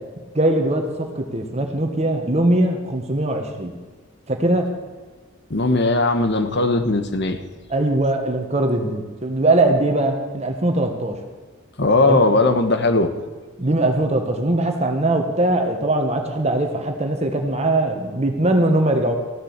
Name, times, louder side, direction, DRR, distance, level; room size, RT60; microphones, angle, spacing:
voice 1, 0.3-3.7 4.3-4.7 7.7-11.2 12.0-12.2 13.6-19.2, right 1 dB, 30° right, 4 dB, 1.4 m, -21 dB
voice 2, 5.5-7.4 11.8-13.1, left 2 dB, 55° left, 8 dB, 1.1 m, -18 dB
15.0 x 7.7 x 8.1 m, 1.4 s
head